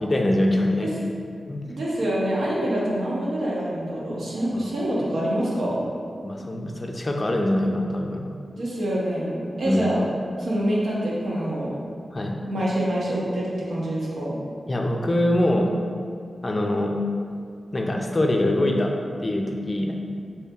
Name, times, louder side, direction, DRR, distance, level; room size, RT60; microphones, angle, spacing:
voice 1, 0.0-0.9 1.5-1.6 4.5-4.7 6.2-8.2 9.6-9.8 12.1-12.4 14.7-15.7 16.4-17.0 17.7-18.9 19.2-19.9, left 1 dB, 30° left, 1 dB, 0.4 m, -23 dB
voice 2, 1.6-5.8 8.5-10.0 10.4-11.7 12.5-14.3, right 1 dB, 85° right, -6 dB, 0.9 m, -26 dB
5.6 x 3.2 x 2.4 m, 2.2 s
wide cardioid pair, 115°, 0 cm